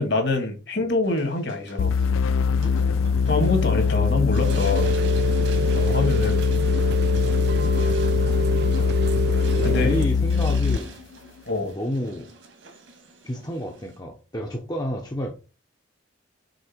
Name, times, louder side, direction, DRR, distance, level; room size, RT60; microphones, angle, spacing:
voice 1, 0.0-1.9 3.3-4.9 5.8-6.4 9.6-10.0 11.5-11.7, left 2 dB, 60° left, 2.2 m, -25 dB
sound 1, 1.0-14.0, right 3 dB, 70° right, 2.1 m, -45 dB
sound 2, 1.8-10.9, left 5 dB, 85° left, 0.3 m, -22 dB
Rain, 4.4-10.1, right 3 dB, 55° right, 0.4 m, -28 dB
voice 2, 9.6-10.9 11.6-12.3 13.2-15.3, equal, 20° left, 0.9 m, -30 dB
6.5 x 4.5 x 4.5 m
head